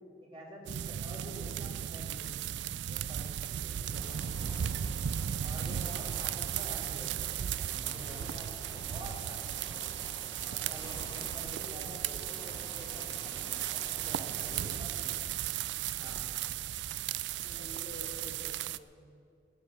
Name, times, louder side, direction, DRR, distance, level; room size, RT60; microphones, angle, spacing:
voice 1, 0.3-2.4 2.9-4.8 5.4-9.7 10.4-15.2 15.9-16.3 17.4-17.9, equal, 30° right, -4 dB, 3.1 m, -49 dB
sound 1, 0.7-18.8, right 10 dB, 65° right, 0.3 m, -36 dB
sound 2, 3.9-14.8, left 3 dB, 25° left, 0.7 m, -50 dB
voice 2, 11.4-12.2 14.9-15.1 17.4-19.1, equal, 45° left, -2 dB, 2.6 m, -50 dB
16.0 x 10.0 x 7.3 m, 2.4 s
head